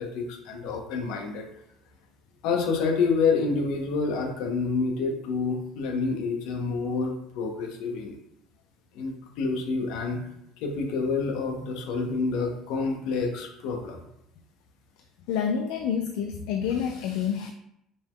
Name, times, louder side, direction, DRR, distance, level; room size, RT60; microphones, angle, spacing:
voice 1, 0.0-1.4 2.4-8.2 8.9-10.2 10.6-14.0, left 4 dB, 65° left, 3 dB, 0.8 m, -28 dB
voice 2, 15.3-17.5, left 7 dB, 85° left, 5 dB, 0.3 m, -28 dB
5.2 x 2.3 x 3.6 m, 0.78 s
cardioid pair, 175°, 0 cm